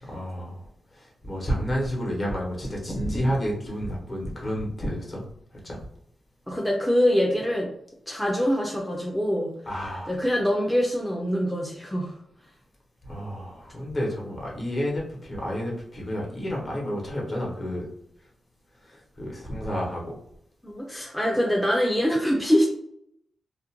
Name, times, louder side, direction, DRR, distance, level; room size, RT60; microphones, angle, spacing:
voice 1, 0.1-0.6 0.9-5.2 5.6-5.8 9.7-10.2 13.1-17.8 18.8-20.1, equal, 35° left, -3 dB, 0.9 m, -30 dB
voice 2, 6.5-7.7 8.1-9.5 10.1-12.1 20.6-22.7, equal, ahead, -2 dB, 0.4 m, -24 dB
2.5 x 2.1 x 2.9 m, 0.72 s
wide cardioid pair, 105°, 0 cm